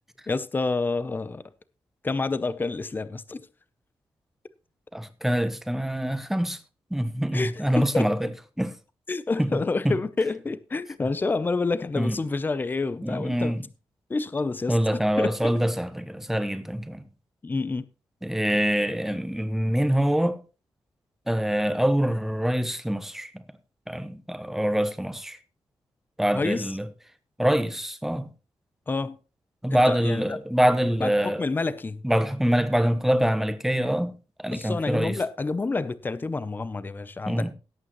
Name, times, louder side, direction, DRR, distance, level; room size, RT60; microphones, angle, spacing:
voice 1, 0.3-1.4 2.0-3.4 7.3-8.1 9.1-13.6 14.1-15.5 17.4-17.9 26.3-26.7 28.9-29.2 29.7-30.4 31.0-32.0 34.5-37.5, left 3 dB, 20° left, 0.6 m, -28 dB
voice 2, 4.9-6.6 6.9-8.2 8.6-8.7 9.4-9.6 9.8-10.0 12.0-12.2 13.0-13.6 14.7-17.0 18.2-20.4 21.3-23.4 23.9-25.4 26.2-26.9 27.4-28.3 29.6-31.4 32.0-34.1 34.4-35.2 37.3-37.5, equal, 5° right, 0.9 m, -25 dB
17.5 x 8.6 x 3.0 m
wide cardioid pair, 160°, 9 cm